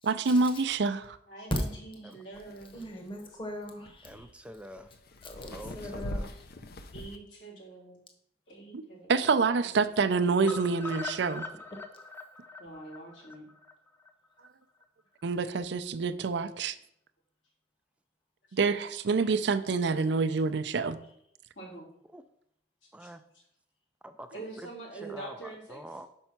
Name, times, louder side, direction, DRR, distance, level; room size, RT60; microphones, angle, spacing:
voice 1, 0.0-1.2 8.7-8.8 9.1-11.4 15.2-16.7 18.5-21.0, right 4 dB, 70° right, 10 dB, 0.5 m, -27 dB
voice 2, 1.3-2.9 6.2-6.4 6.9-8.0 8.5-10.1 12.6-13.4 21.5-21.9 23.0-23.4 24.3-25.8, right 2 dB, 85° left, -5 dB, 3.2 m, -45 dB
sound 1, 2.3-7.2, equal, 60° left, 0.6 m, -42 dB
voice 3, 2.7-4.3 5.2-6.3, equal, 30° left, 4 dB, 1.1 m, -38 dB
voice 4, 4.0-4.9 5.5-6.3 22.1-22.2 22.9-23.2 24.0-24.7 25.0-26.1, right 1 dB, 5° right, 9 dB, 0.3 m, -46 dB
sound 2, 10.4-14.5 14.8-14.9 15.2-15.3 15.6-15.7, left 3 dB, 15° left, 0.7 m, -42 dB
5.5 x 5.4 x 5.9 m, 0.72 s
head